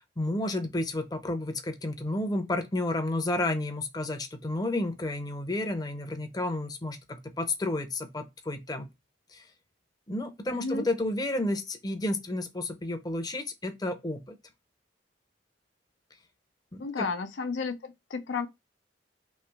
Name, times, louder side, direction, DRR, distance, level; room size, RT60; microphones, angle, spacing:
voice 1, 0.2-8.9 9.3-9.5 10.1-14.4 16.7-17.1, left 2 dB, 20° left, 0.6 m, -31 dB
voice 2, 16.8-18.5, left 4 dB, 80° left, 0.5 m, -32 dB
3.2 x 2.9 x 4.5 m
head